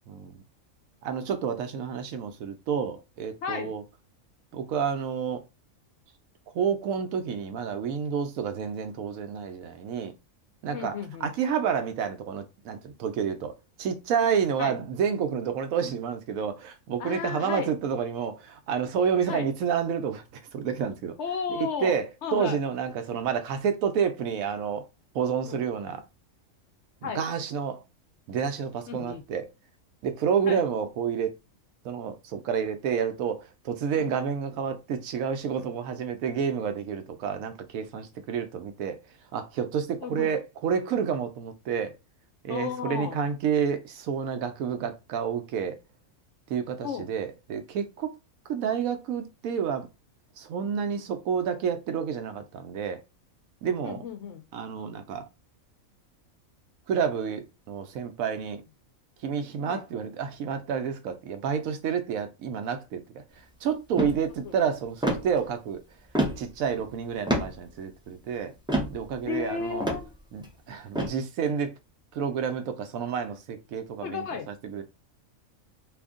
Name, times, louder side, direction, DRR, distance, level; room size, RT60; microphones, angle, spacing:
voice 1, 1.0-3.8 4.5-5.4 6.5-10.1 10.6-11.0 11.2-21.1 21.5-24.8 25.1-26.0 27.0-27.8 28.3-29.5 30.0-31.3 31.8-39.0 39.3-41.9 42.4-45.8 46.5-48.1 48.5-49.9 50.4-53.0 53.6-54.0 54.5-55.3 56.9-58.6 59.2-63.2 63.6-65.8 66.4-68.5 68.9-69.9 70.3-71.7 72.1-74.8, right 7 dB, 80° right, 1.0 m, -29 dB
voice 2, 3.4-3.8 10.7-11.3 14.6-14.8 17.0-17.7 19.3-19.5 21.2-22.6 25.5-25.6 27.0-27.2 28.9-29.2 30.4-30.6 33.9-34.1 40.0-40.3 42.5-43.2 46.8-47.1 53.8-54.4 59.6-59.8 64.4-64.5 69.2-70.1 74.0-74.5, left 6 dB, 65° left, 0.7 m, -34 dB
sound 1, 64.0-64.2 65.0-65.3 66.2-66.5 67.3-67.6 68.7-69.0 69.8-70.1 71.0-71.1, right 1 dB, 5° right, 0.4 m, -26 dB
2.7 x 2.6 x 3.5 m
omnidirectional pair, 1.5 m